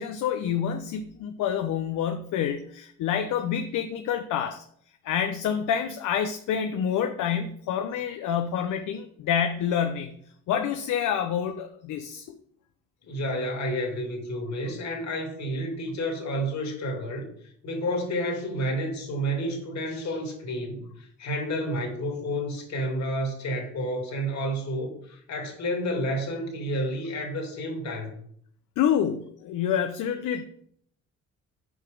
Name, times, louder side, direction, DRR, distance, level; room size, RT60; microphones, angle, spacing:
voice 1, 0.0-4.6 5.0-10.1 10.5-12.4 28.8-30.4, left 8 dB, 80° left, 6 dB, 0.7 m, -27 dB
voice 2, 13.0-17.3 17.6-28.1, equal, 65° left, 1 dB, 2.6 m, -30 dB
6.3 x 4.9 x 5.1 m, 0.63 s
cardioid pair, 90°, 30 cm